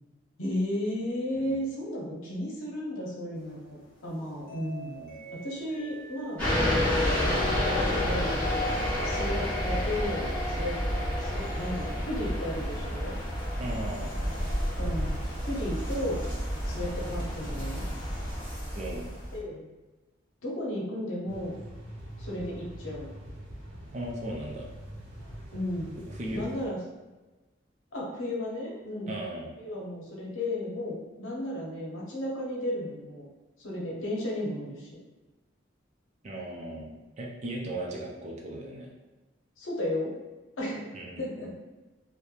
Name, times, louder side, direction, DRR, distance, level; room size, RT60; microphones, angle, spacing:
voice 1, 0.4-5.0 5.3-6.5 7.7-8.4 9.0-10.8 11.2-13.2 14.8-15.2 15.5-16.2 16.6-17.8 19.3-19.6 20.4-21.6 22.2-23.1 25.5-26.0 26.3-26.8 27.9-29.2 29.6-33.3 33.6-34.9 39.6-40.1 40.6-41.5, left 1 dB, 85° left, -3 dB, 0.7 m, -34 dB
sound 1, 3.3-10.3, equal, 45° left, 0.5 m, -44 dB
sound 2, 6.4-19.4, left 1 dB, 5° left, 0.9 m, -30 dB
voice 2, 13.6-14.1 18.7-19.1 23.9-24.7 26.1-26.5 29.1-29.5 36.2-38.9 40.9-41.3, right 1 dB, 35° right, -2 dB, 0.4 m, -37 dB
sound 3, 21.3-26.7, right 1 dB, 70° right, 0.8 m, -44 dB
3.0 x 2.1 x 2.3 m, 1.1 s
head